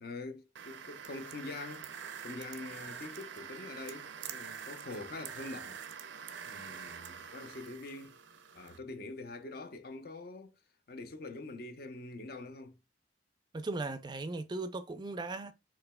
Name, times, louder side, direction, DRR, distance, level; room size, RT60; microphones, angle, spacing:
voice 1, 0.0-1.9 2.2-5.8 6.4-8.2 8.5-10.5 10.9-12.8, left 2 dB, 55° left, 0.6 m, -44 dB
sound 1, 0.6-8.8, right 7 dB, 85° right, 0.5 m, -46 dB
voice 2, 13.5-15.5, right 3 dB, 25° right, 0.3 m, -37 dB
4.8 x 3.0 x 2.2 m
head